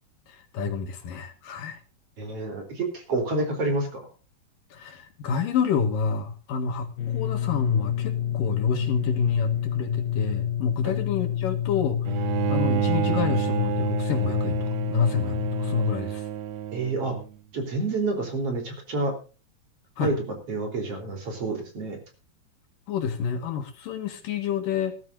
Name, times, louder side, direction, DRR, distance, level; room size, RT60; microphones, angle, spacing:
voice 1, 0.3-1.8 4.7-12.1 12.5-16.3 20.0-20.1 22.9-24.9, left 6 dB, 70° left, 7 dB, 3.2 m, -28 dB
voice 2, 2.2-4.0 10.8-10.9 16.7-17.1 17.5-19.1 20.0-20.2 20.5-22.0, right 2 dB, 40° right, 4 dB, 4.3 m, -28 dB
sound 1, 7.0-15.9, left 10 dB, 90° left, 3.4 m, -28 dB
Bowed string instrument, 12.1-17.3, right 13 dB, 80° right, 1.5 m, -29 dB
19.5 x 13.0 x 2.6 m, 0.34 s
omnidirectional pair, 4.3 m